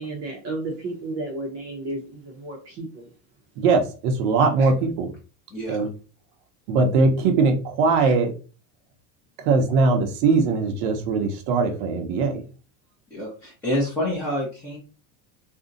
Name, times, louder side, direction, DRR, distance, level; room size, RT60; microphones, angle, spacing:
voice 1, 0.0-3.1 8.0-8.1, right 2 dB, 35° right, 0.7 m, -33 dB
voice 2, 3.6-5.1 5.7-5.9 6.7-8.3 9.4-12.4, right 4 dB, 70° right, 0.8 m, -21 dB
voice 3, 5.5-5.8 13.1-14.8, left 1 dB, 5° left, 0.6 m, -27 dB
2.6 x 2.1 x 3.8 m
cardioid pair, 170°, 46 cm